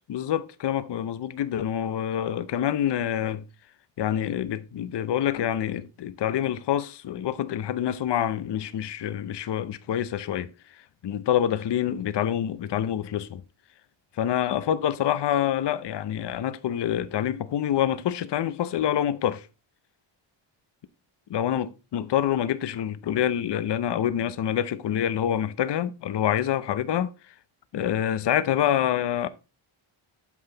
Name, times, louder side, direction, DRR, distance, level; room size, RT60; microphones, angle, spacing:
voice 1, 0.1-3.4 4.0-10.5 11.0-13.4 14.2-19.5 21.3-27.1 27.7-29.3, left 10 dB, 55° left, 0.7 m, -26 dB
8.5 x 5.7 x 3.9 m
wide cardioid pair, 110°, 50 cm